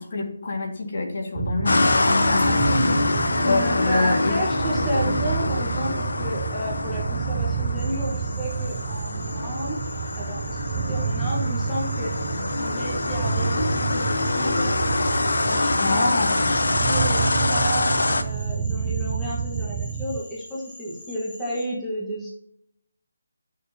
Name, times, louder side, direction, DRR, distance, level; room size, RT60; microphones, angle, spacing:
voice 1, 0.0-4.4 15.8-16.3, left 3 dB, 45° left, 2 dB, 2.0 m, -26 dB
sound 1, 1.4-20.2, right 6 dB, 20° right, 0.3 m, -29 dB
sound 2, 1.7-18.2, left 2 dB, 80° left, 0.9 m, -25 dB
voice 2, 3.4-9.8 10.2-12.1 12.5-14.8 15.5-16.3 16.8-17.2 17.5-22.3, equal, 5° left, -8 dB, 1.4 m, -32 dB
Frog, 7.8-21.6, left 1 dB, 25° left, 2.1 m, -45 dB
12.0 x 6.5 x 2.8 m, 0.73 s
hypercardioid pair, 170°, 0 cm